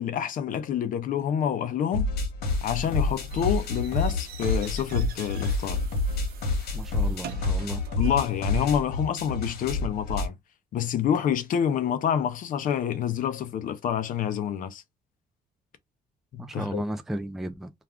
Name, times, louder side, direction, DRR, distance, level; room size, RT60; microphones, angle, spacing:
voice 1, 0.0-2.1 2.6-5.8 8.0-10.4 10.7-14.8 16.3-16.8, left 9 dB, 55° left, 0.5 m, -27 dB
sound 1, 1.9-10.3, left 3 dB, 70° left, 1.1 m, -28 dB
sound 2, 2.4-8.7, right 6 dB, 65° right, 0.6 m, -45 dB
voice 2, 6.7-7.8 16.4-17.7, right 1 dB, ahead, 0.3 m, -34 dB
2.4 x 2.3 x 3.4 m
cardioid pair, 110°, 17 cm